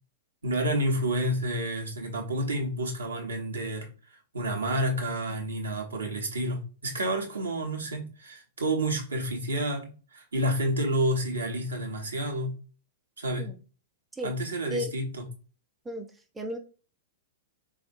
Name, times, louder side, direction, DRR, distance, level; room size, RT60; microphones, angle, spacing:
voice 1, 0.4-3.9 4.3-12.6 13.2-13.5 14.2-15.3, right 1 dB, 75° right, 0.7 m, -29 dB
voice 2, 15.8-16.6, equal, 10° right, 0.4 m, -35 dB
3.6 x 2.5 x 2.5 m
figure-of-eight pair, 100°, 0 cm